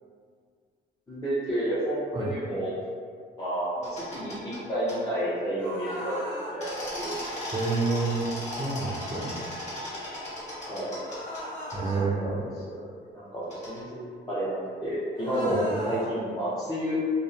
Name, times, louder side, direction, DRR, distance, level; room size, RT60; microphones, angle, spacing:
voice 1, 1.1-2.7 3.4-7.2 10.7-11.0 11.8-12.4 12.7-12.8 13.1-17.0, equal, 20° left, -12 dB, 0.6 m, -30 dB
sound 1, 3.8-4.6 4.9-5.0 6.6-11.4 11.7-11.8 13.5-13.8, left 1 dB, 35° left, 1.1 m, -36 dB
sound 2, 5.6-6.6 11.0-12.1 15.2-16.1, right 1 dB, 70° left, 0.7 m, -37 dB
voice 2, 7.5-8.3 8.6-9.4 11.7-12.5 15.5-15.9, right 3 dB, 25° right, -1 dB, 0.4 m, -29 dB
2.5 x 2.0 x 2.4 m, 2.1 s
cardioid pair, 90°, 20 cm